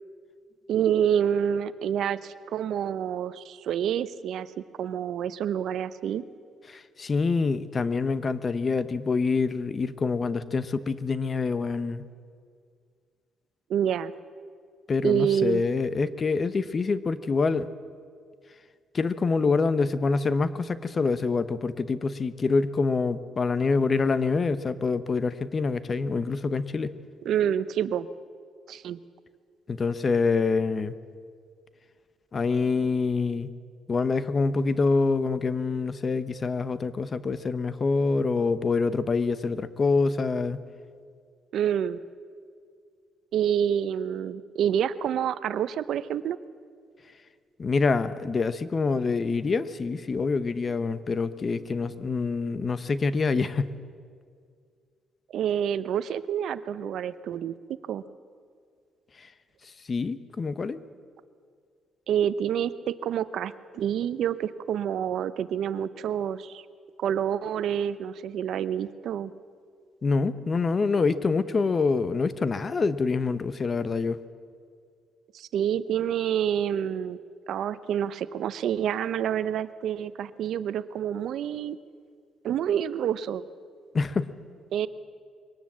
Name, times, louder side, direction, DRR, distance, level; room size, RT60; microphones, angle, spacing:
voice 1, 0.7-4.5 4.8-6.2 13.7-14.1 15.0-15.6 27.2-28.1 28.7-29.0 41.5-42.0 43.3-46.4 55.3-57.5 57.9-58.0 62.1-66.6 67.0-69.3 75.3-77.2 77.5-81.8 82.4-83.4 84.7-84.9, right 9 dB, 75° right, 14 dB, 0.7 m, -27 dB
voice 2, 6.7-12.0 14.9-17.7 18.9-26.9 29.7-30.9 32.3-33.5 33.9-40.6 47.6-53.7 59.2-59.3 59.9-60.8 70.0-74.2 83.9-84.3, left 4 dB, 40° left, 14 dB, 1.0 m, -26 dB
23.0 x 18.5 x 7.5 m, 2.1 s
cardioid pair, 90°, 0 cm